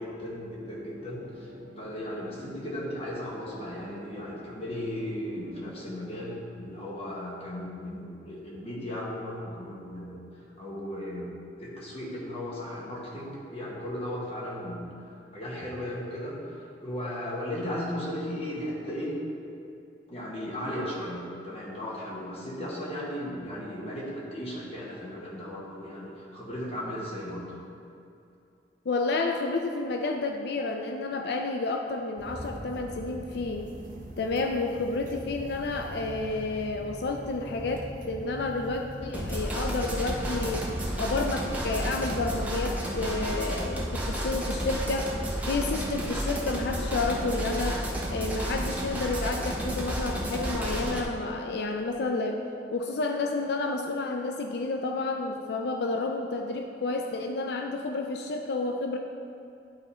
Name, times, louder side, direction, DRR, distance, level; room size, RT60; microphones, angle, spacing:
voice 1, 0.0-10.2 10.6-11.3 11.6-19.2 20.1-27.6, left 1 dB, 35° left, -4 dB, 1.4 m, -36 dB
sound 1, 0.6-5.6, left 2 dB, 90° right, 1.0 m, -48 dB
voice 2, 28.9-33.7 34.2-40.7 41.0-47.8 48.1-52.4 52.7-59.0, left 3 dB, 65° left, 3 dB, 0.4 m, -30 dB
sound 2, 32.2-42.3, equal, 50° right, 0.7 m, -42 dB
sound 3, 39.1-51.0, equal, 10° right, 0.9 m, -31 dB
10.5 x 3.9 x 4.3 m, 2.6 s
head